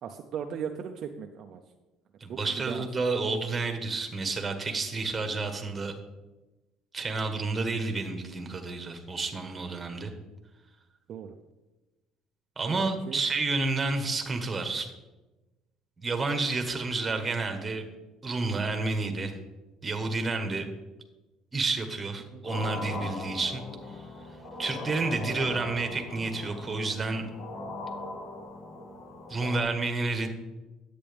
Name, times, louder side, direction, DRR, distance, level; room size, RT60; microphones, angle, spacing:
voice 1, 0.0-1.6 2.3-2.9 11.1-11.3 12.7-13.2 22.3-22.4, right 7 dB, 50° right, 4 dB, 0.6 m, -38 dB
voice 2, 2.2-5.9 6.9-10.1 12.6-14.9 16.0-17.8 18.2-19.3 19.8-20.7 21.5-23.6 24.6-27.3 29.3-30.3, right 3 dB, 20° right, 5 dB, 1.4 m, -30 dB
sound 1, 22.5-29.6, left 2 dB, 50° left, 2.0 m, -39 dB
10.5 x 8.4 x 3.5 m, 1.1 s
cardioid pair, 120°, 0 cm